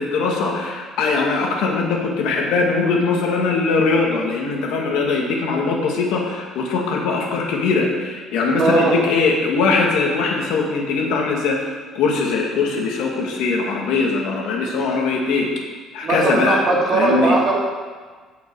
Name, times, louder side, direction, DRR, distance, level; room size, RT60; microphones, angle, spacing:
voice 1, 0.0-15.5 15.9-16.6 16.9-17.4, left 4 dB, 75° left, 0 dB, 2.0 m, -21 dB
voice 2, 8.6-8.9 16.0-17.5, right 3 dB, 35° right, -2 dB, 2.2 m, -18 dB
15.5 x 5.6 x 4.8 m, 1.5 s
cardioid pair, 165°, 0 cm